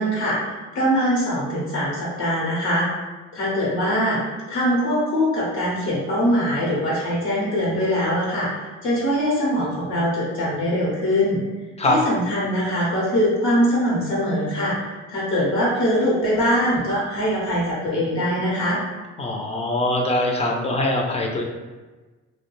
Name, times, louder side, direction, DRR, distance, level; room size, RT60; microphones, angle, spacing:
voice 1, 0.0-2.9 3.3-11.4 11.9-18.8, equal, 80° left, -5 dB, 0.9 m, -22 dB
voice 2, 19.2-21.4, left 1 dB, 20° left, 1 dB, 0.4 m, -22 dB
2.3 x 2.1 x 3.0 m, 1.3 s
cardioid pair, 90°, 30 cm